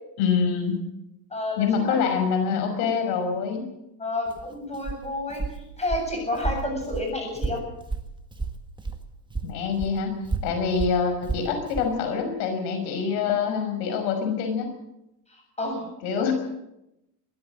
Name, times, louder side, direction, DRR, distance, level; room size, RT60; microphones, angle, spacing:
voice 1, 0.2-0.8 1.6-3.6 9.4-14.7 16.0-16.3, left 6 dB, 75° left, 6 dB, 5.8 m, -25 dB
voice 2, 1.3-2.0 4.0-5.5 5.8-7.6 15.3-15.9 16.1-16.3, left 2 dB, 15° left, 2 dB, 8.0 m, -30 dB
Walk footsteps, 4.3-9.0 9.3-11.9, right 3 dB, 10° right, 1.6 m, -32 dB
23.0 x 16.0 x 7.8 m, 0.86 s
cardioid pair, 155°, 49 cm